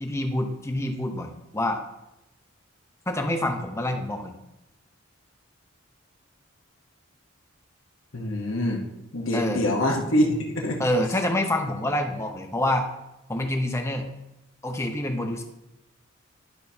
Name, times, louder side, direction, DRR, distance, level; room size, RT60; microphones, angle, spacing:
voice 1, 0.0-1.8 3.1-4.3 9.3-9.6 10.8-12.9 13.3-14.1 14.6-15.4, left 1 dB, 15° left, 4 dB, 0.7 m, -27 dB
voice 2, 8.1-8.9 9.1-10.8, left 1 dB, 70° left, 0 dB, 1.1 m, -25 dB
10.5 x 6.4 x 2.8 m, 0.90 s
head